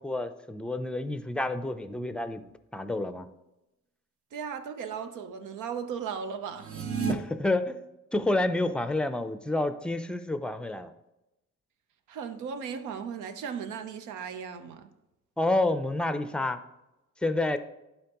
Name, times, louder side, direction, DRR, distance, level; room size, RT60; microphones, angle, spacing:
voice 1, 0.0-2.4 2.7-3.3 7.1-7.8 8.1-10.9 15.4-16.6 17.2-17.6, left 2 dB, 5° left, 11 dB, 0.5 m, -29 dB
voice 2, 4.3-6.7 12.1-14.9, right 7 dB, 85° right, 9 dB, 0.8 m, -36 dB
sound 1, 6.5-7.1, right 6 dB, 50° right, 1.0 m, -30 dB
11.5 x 4.4 x 2.9 m, 0.93 s
cardioid pair, 90°, 30 cm